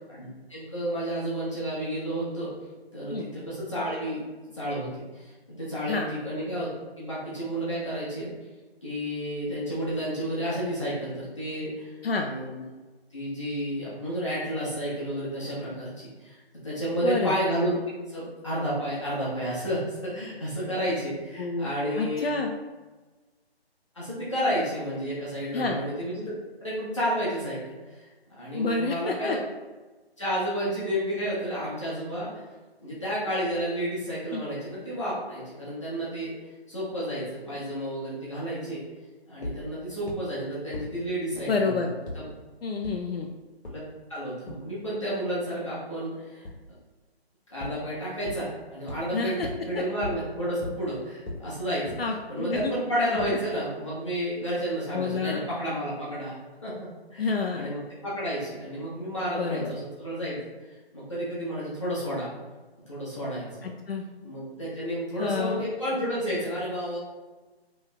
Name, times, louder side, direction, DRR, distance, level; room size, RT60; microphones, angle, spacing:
voice 1, 0.1-2.5 2.9-4.2 4.5-6.7 7.0-8.3 8.8-12.6 13.1-16.4 16.6-17.7 18.1-22.3 23.9-26.3 26.6-27.6 27.9-29.4 30.2-32.4 32.8-36.3 36.7-38.8 39.3-41.8 42.1-42.3 43.6-43.8 44.1-46.5 47.5-51.9 52.3-56.7 57.1-60.4 60.9-62.3 62.9-63.7 64.2-67.0, equal, 30° left, -8 dB, 0.8 m, -31 dB
voice 2, 17.0-17.4 21.4-21.7 22.0-22.5 25.5-25.8 28.5-29.4 34.3-34.4 41.5-41.9 42.6-43.3 49.1-49.5 49.8-49.9 52.0-52.7 53.0-53.2 54.9-55.4 57.2-57.7 59.4-59.7 63.6-64.0 65.2-65.7, left 4 dB, 65° left, 2 dB, 0.5 m, -28 dB
sound 1, 39.4-39.5 40.1-40.2 40.7-40.8 41.3-41.4 42.1-42.2 42.8-42.9 43.6-43.7 44.5-44.6 46.4-46.5 47.6-47.7 48.2-48.3 48.9-49.0 49.4-49.5 50.0-50.1 50.6-50.7 51.3-51.4 51.9-52.0 52.6-52.7 53.2-53.3, left 1 dB, 85° left, 1.1 m, -35 dB
4.6 x 3.1 x 2.3 m, 1.2 s
hypercardioid pair, 170°, 32 cm